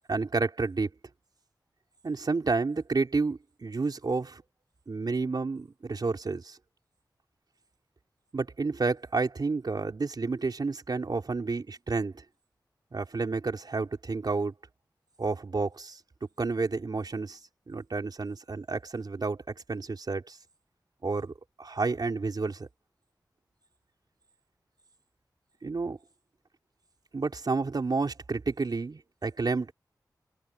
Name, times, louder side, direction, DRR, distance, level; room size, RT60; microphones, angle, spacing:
voice 1, 0.1-0.9 2.0-4.4 4.9-6.6 8.3-12.2 12.9-14.5 15.2-16.0 16.4-17.4 17.7-20.4 21.0-22.7 25.6-26.0 27.1-29.7, right 4 dB, 65° right, 3.9 m, -30 dB
wide cardioid pair, 70°, 8 cm